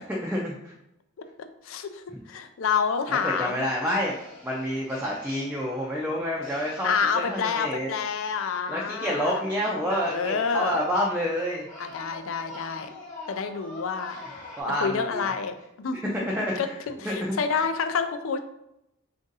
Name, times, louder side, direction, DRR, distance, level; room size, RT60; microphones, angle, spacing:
voice 1, 0.1-0.7 2.1-2.2 3.1-4.1 4.4-7.9 8.7-11.7 14.6-15.3 16.0-16.8 17.1-17.3, equal, 5° right, -4 dB, 0.4 m, -28 dB
voice 2, 1.6-3.6 6.8-9.4 9.9-10.8 11.8-12.9 13.3-14.2 14.8-16.3 16.6-18.4, left 6 dB, 70° left, 8 dB, 0.4 m, -28 dB
sound 1, 3.1-8.2 8.9-14.6, left 2 dB, 40° left, 1.1 m, -45 dB
3.6 x 2.6 x 3.9 m, 0.86 s
head